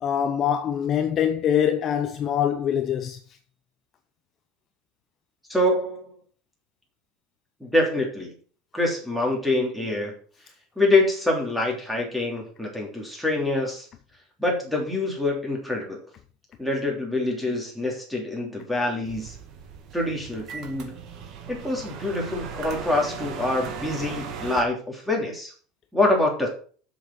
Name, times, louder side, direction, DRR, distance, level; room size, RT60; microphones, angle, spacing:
voice 1, 0.0-3.2, left 9 dB, 30° left, 0.8 m, -24 dB
voice 2, 5.5-6.1 7.6-8.3 8.7-10.1 10.8-13.9 14.4-16.0 16.6-19.4 19.9-20.9 21.5-25.5 25.9-26.5, left 2 dB, ahead, 3.3 m, -25 dB
sound 1, 19.0-24.6, right 6 dB, 45° right, 2.1 m, -37 dB
7.3 x 7.1 x 7.3 m
cardioid pair, 160°, 0 cm